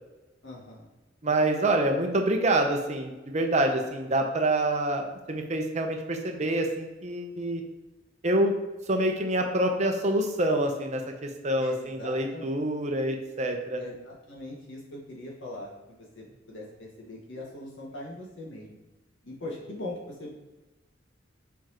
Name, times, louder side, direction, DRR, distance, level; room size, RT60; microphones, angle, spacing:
voice 1, 0.4-0.9 11.6-12.4 13.8-18.7 19.2-20.5, left 1 dB, 90° left, -3 dB, 1.8 m, -41 dB
voice 2, 1.2-7.6 8.2-8.5 8.9-13.8, right 1 dB, 40° right, 4 dB, 0.8 m, -26 dB
7.1 x 4.6 x 3.0 m, 1.1 s
head